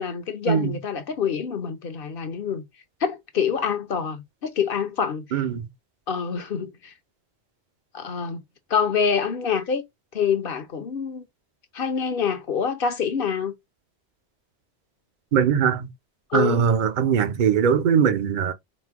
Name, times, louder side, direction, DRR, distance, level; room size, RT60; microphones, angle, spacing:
voice 1, 0.0-2.6 3.0-5.4 6.1-6.9 7.9-8.4 8.7-9.8 10.1-11.3 11.7-13.5 16.3-16.7, left 6 dB, 55° left, 0.9 m, -26 dB
voice 2, 5.3-5.7 15.3-15.9 16.3-18.5, right 7 dB, 50° right, 0.7 m, -21 dB
4.1 x 2.2 x 4.5 m
omnidirectional pair, 1.1 m